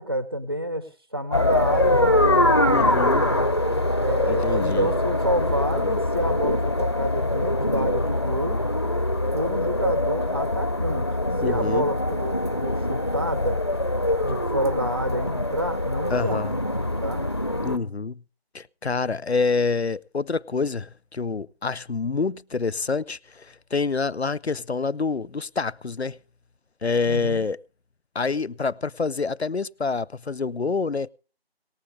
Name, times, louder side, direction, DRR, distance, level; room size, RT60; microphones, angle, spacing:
voice 1, 0.0-2.5 3.1-3.5 4.0-8.6 9.3-11.1 11.4-13.6 14.2-16.4 17.0-17.3 27.1-27.5, equal, 25° right, 0.8 m, -28 dB
sound 1, 1.3-17.8, left 1 dB, 25° left, 0.9 m, -23 dB
voice 2, 2.7-3.2 4.3-4.9 11.4-11.9 16.1-16.6 17.6-18.2 18.5-26.2 26.8-27.6 28.1-31.1, left 4 dB, 90° left, 0.8 m, -27 dB
19.5 x 14.0 x 3.7 m
figure-of-eight pair, 170°, 31 cm